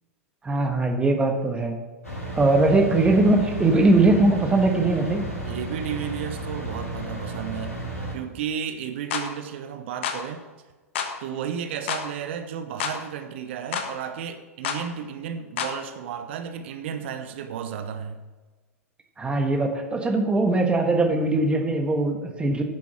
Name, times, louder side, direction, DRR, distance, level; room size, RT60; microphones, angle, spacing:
voice 1, 0.4-1.8 2.3-5.2 19.2-22.6, right 2 dB, 15° right, 1.4 m, -21 dB
sound 1, 2.0-8.1, right 1 dB, 80° left, 2.8 m, -33 dB
voice 2, 5.5-7.8 8.1-10.4 11.2-18.2, right 8 dB, 50° right, 0.8 m, -33 dB
sound 2, 9.1-9.3 10.0-10.2 10.9-11.1 11.9-12.1 12.8-13.0 13.7-13.9 14.6-14.8 15.6-15.8, left 7 dB, 55° left, 1.3 m, -28 dB
10.0 x 6.9 x 6.2 m
figure-of-eight pair, 95°, 8 cm